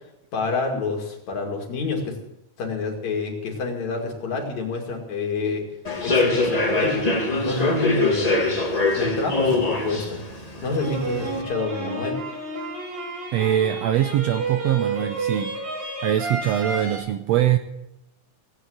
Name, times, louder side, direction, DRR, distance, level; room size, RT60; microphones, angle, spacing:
voice 1, 0.3-2.2 2.6-5.6 6.0-8.5 9.0-10.2 10.6-12.2, left 4 dB, 65° left, 2 dB, 3.6 m, -28 dB
Human voice / Subway metro underground, 5.8-11.4, left 2 dB, 25° left, 0.8 m, -23 dB
sound 1, 10.7-17.0, right 3 dB, 60° right, 4.3 m, -31 dB
voice 2, 13.3-15.6 16.0-17.6, right 11 dB, 75° right, 8 dB, 1.6 m, -22 dB
17.5 x 8.7 x 7.8 m, 0.86 s
omnidirectional pair, 3.6 m